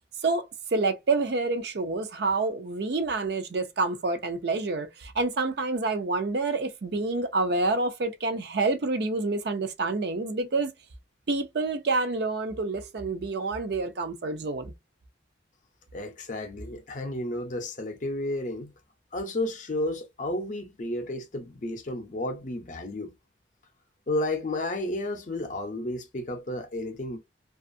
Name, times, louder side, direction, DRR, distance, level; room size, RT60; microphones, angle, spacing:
voice 1, 0.7-10.7 11.3-14.7, right 3 dB, 55° right, 0.5 m, -28 dB
voice 2, 15.9-18.7 19.1-23.1 24.1-27.2, left 1 dB, 40° left, 0.5 m, -32 dB
2.5 x 2.4 x 2.5 m
head